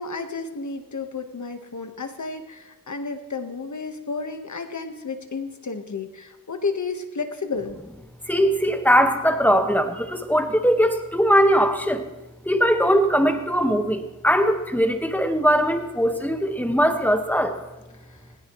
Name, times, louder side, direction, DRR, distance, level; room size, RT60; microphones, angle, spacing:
voice 1, 0.0-7.8, left 4 dB, 60° left, 6 dB, 1.4 m, -32 dB
voice 2, 8.3-9.9 10.3-12.0 12.5-17.5, equal, 5° left, 5 dB, 1.4 m, -20 dB
20.5 x 17.5 x 3.1 m, 1.0 s
wide cardioid pair, 90°, 33 cm